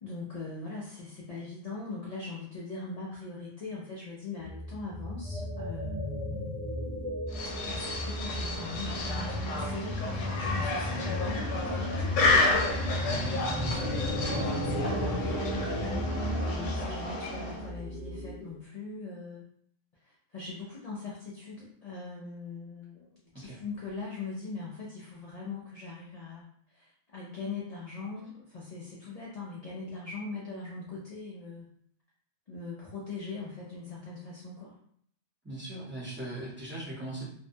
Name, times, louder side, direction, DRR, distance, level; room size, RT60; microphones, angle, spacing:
voice 1, 0.0-6.5 7.6-12.1 13.1-16.1 16.4-19.4 20.0-31.7 32.5-34.8, left 3 dB, 65° left, -5 dB, 0.4 m, -41 dB
sound 1, 4.4-18.6, equal, 50° right, 0.4 m, -34 dB
sound 2, 7.3-17.7, left 3 dB, 80° left, 0.9 m, -31 dB
voice 2, 13.2-13.9 23.3-23.6 35.4-37.3, right 2 dB, 10° right, -8 dB, 0.7 m, -40 dB
2.6 x 2.1 x 2.6 m, 0.64 s
omnidirectional pair, 1.3 m